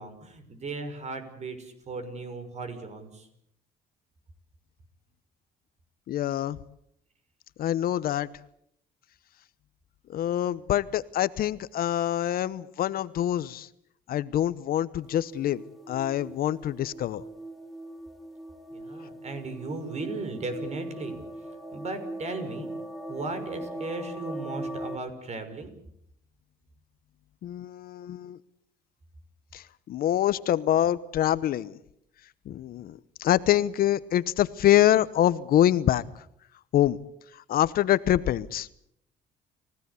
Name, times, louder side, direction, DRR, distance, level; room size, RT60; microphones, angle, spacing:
voice 1, 0.0-3.3 18.7-22.7 23.1-25.7, right 3 dB, 40° right, 9 dB, 5.7 m, -36 dB
voice 2, 6.1-6.6 7.6-8.3 10.1-13.7 14.1-17.2 27.4-28.4 29.5-31.8 32.5-36.0 36.7-37.0 37.3-38.7, left 12 dB, 60° left, 17 dB, 1.0 m, -25 dB
sound 1, 15.0-25.0, right 1 dB, ahead, 2.0 m, -40 dB
29.5 x 17.0 x 8.4 m, 0.72 s
cardioid pair, 110°, 17 cm